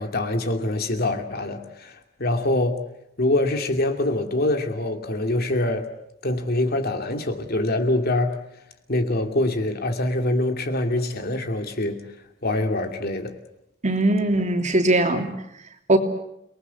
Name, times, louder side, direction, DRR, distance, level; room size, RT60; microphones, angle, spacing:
voice 1, 0.0-2.8 3.2-5.9 6.2-8.4 8.9-12.0 12.4-13.4, left 1 dB, 55° left, 6 dB, 2.7 m, -24 dB
voice 2, 13.8-15.3 15.9-16.0, right 2 dB, 40° right, 5 dB, 3.2 m, -20 dB
29.5 x 20.0 x 8.4 m, 0.81 s
head